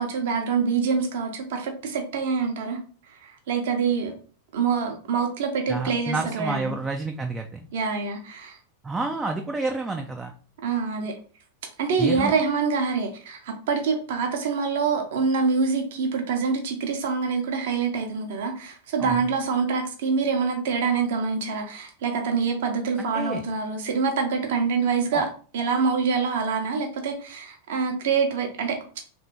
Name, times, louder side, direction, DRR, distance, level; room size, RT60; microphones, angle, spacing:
voice 1, 0.0-2.8 3.2-4.1 4.5-6.7 7.7-8.6 10.6-11.1 11.8-25.3 25.5-29.0, right 5 dB, 55° right, 3 dB, 0.8 m, -25 dB
voice 2, 5.7-7.7 8.8-10.3 12.0-12.3 19.0-19.3 23.0-23.4 25.1-25.2, right 3 dB, 10° right, 3 dB, 0.4 m, -29 dB
3.3 x 2.7 x 4.3 m, 0.41 s
figure-of-eight pair, 90°, 0 cm